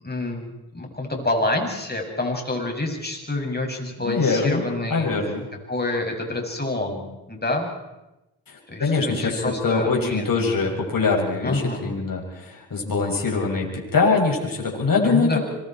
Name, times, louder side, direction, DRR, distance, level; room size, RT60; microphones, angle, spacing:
voice 1, 0.0-5.1 5.7-7.7 8.7-10.3 11.4-11.8 15.0-15.4, left 2 dB, 20° left, 1 dB, 7.0 m, -27 dB
voice 2, 4.0-5.4 8.5-15.4, left 4 dB, 45° left, -1 dB, 6.8 m, -23 dB
26.0 x 24.0 x 4.6 m, 0.99 s
supercardioid pair, 55°, 46 cm